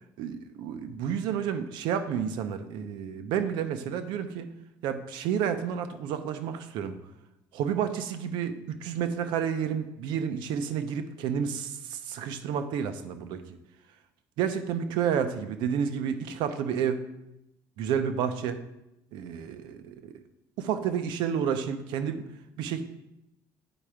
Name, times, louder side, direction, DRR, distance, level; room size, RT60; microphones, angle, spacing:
voice 1, 0.2-4.5 4.8-6.9 7.5-13.4 14.4-17.0 17.8-18.6 19.1-20.2 20.6-22.2 22.6-22.8, right 8 dB, 75° right, 9 dB, 0.7 m, -30 dB
8.9 x 4.5 x 4.9 m, 0.88 s
cardioid pair, 155°, 8 cm